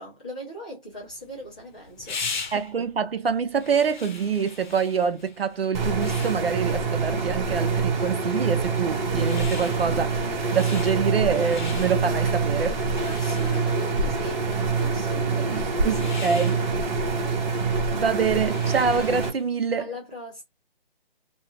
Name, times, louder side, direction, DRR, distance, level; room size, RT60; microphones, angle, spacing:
voice 1, 0.0-2.2 13.0-14.5 14.8-16.2 19.8-20.4, right 2 dB, 10° left, 0.4 m, -39 dB
sound 1, 1.0-19.5, left 5 dB, 55° left, 0.7 m, -41 dB
voice 2, 2.5-12.8 15.5-16.6 17.9-19.9, right 6 dB, 85° right, 0.7 m, -26 dB
sound 2, 5.7-19.3, right 4 dB, 50° right, 1.0 m, -25 dB
2.4 x 2.3 x 3.0 m
hypercardioid pair, 155°, 29 cm